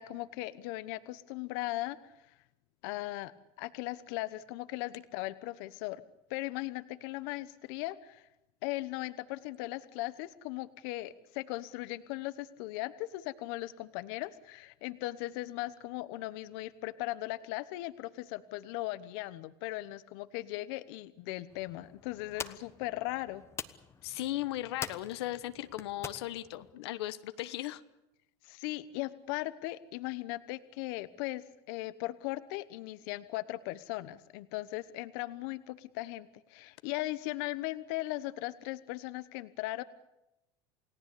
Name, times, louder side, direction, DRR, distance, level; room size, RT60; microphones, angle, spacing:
voice 1, 0.0-2.0 2.8-3.3 3.6-6.0 6.3-8.2 8.6-23.4 28.4-39.8, left 18 dB, 65° left, 14 dB, 1.1 m, -38 dB
sound 1, 21.5-26.7, left 6 dB, 20° left, 1.2 m, -46 dB
voice 2, 24.0-27.8, left 15 dB, 85° left, 12 dB, 1.2 m, -37 dB
29.0 x 18.0 x 8.5 m, 0.90 s
supercardioid pair, 150°, 13 cm